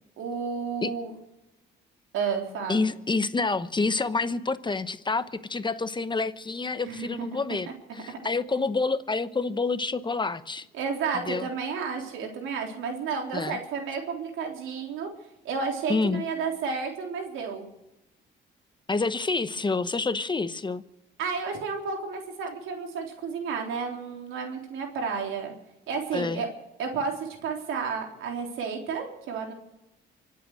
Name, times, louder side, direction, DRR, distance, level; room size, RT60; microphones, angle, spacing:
voice 1, 0.2-1.1 2.1-2.9 6.8-7.3 7.9-8.2 10.8-15.1 15.4-17.7 21.2-25.5 25.9-26.5 26.8-29.5, right 5 dB, 90° right, 2 dB, 3.6 m, -31 dB
voice 2, 2.7-10.6 11.1-11.5 13.3-13.6 15.9-16.2 18.9-20.8 26.1-26.4, left 3 dB, 25° left, 12 dB, 1.0 m, -28 dB
25.0 x 8.4 x 6.5 m, 0.92 s
cardioid pair, 90°, 20 cm